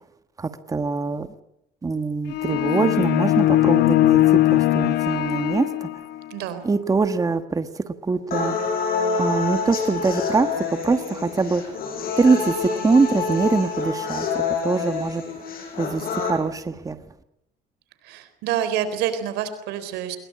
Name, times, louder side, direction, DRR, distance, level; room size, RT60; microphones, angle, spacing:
voice 1, 0.4-1.3 1.8-6.0 6.6-8.6 9.2-11.8 12.2-15.2 15.8-17.0, right 4 dB, 20° right, 10 dB, 1.4 m, -23 dB
sound 1, 2.3-6.3, left 15 dB, 80° left, 1.0 m, -20 dB
voice 2, 6.3-6.6 18.0-20.2, right 9 dB, 90° right, 11 dB, 4.0 m, -27 dB
sound 2, 8.3-16.3, left 5 dB, 60° left, 7.4 m, -27 dB
22.0 x 22.0 x 8.7 m, 0.82 s
cardioid pair, 110°, 17 cm